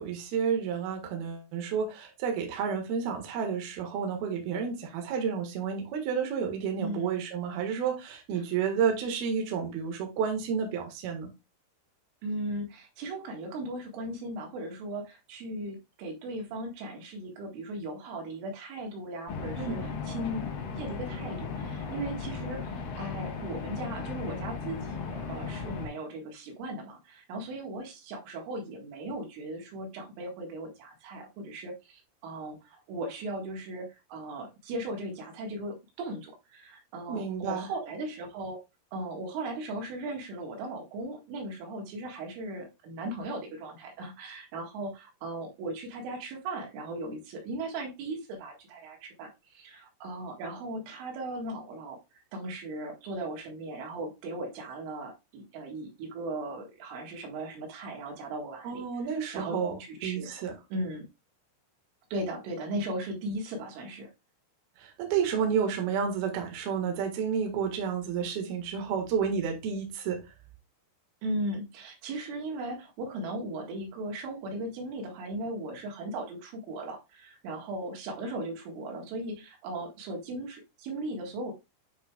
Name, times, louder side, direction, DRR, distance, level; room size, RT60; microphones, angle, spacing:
voice 1, 0.0-11.3 19.6-20.0 37.1-37.7 58.6-60.5 64.8-70.2, right 7 dB, 60° right, 3.0 m, -31 dB
voice 2, 6.8-7.2 12.2-20.5 20.8-38.6 38.9-52.0 52.3-59.1 59.3-60.3 60.7-61.0 62.1-64.1 71.2-81.5, right 1 dB, 80° right, 4.2 m, -37 dB
sound 1, 19.3-25.9, left 5 dB, 60° left, 2.6 m, -36 dB
9.1 x 5.6 x 2.3 m
omnidirectional pair, 5.6 m